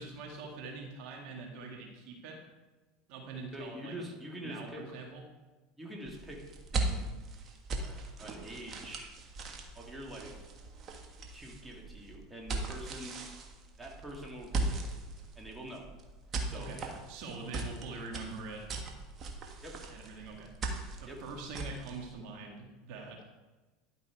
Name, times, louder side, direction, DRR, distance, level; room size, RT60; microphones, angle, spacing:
voice 1, 0.0-2.4 3.1-4.0 4.4-5.2 16.5-16.8 17.1-18.7 19.9-20.5 21.2-23.2, right 3 dB, 60° right, 0 dB, 1.9 m, -44 dB
voice 2, 3.5-4.9 5.8-6.4 6.7-7.0 7.8-9.1 9.7-10.4 11.3-13.2 13.8-14.8 15.4-15.9 16.5-17.0 19.6-19.8 21.1-21.2, right 1 dB, 10° right, -1 dB, 2.1 m, -45 dB
sound 1, 6.1-22.1, right 2 dB, 40° right, 1.5 m, -39 dB
11.5 x 5.5 x 4.6 m, 1.2 s
hypercardioid pair, 85°, 0 cm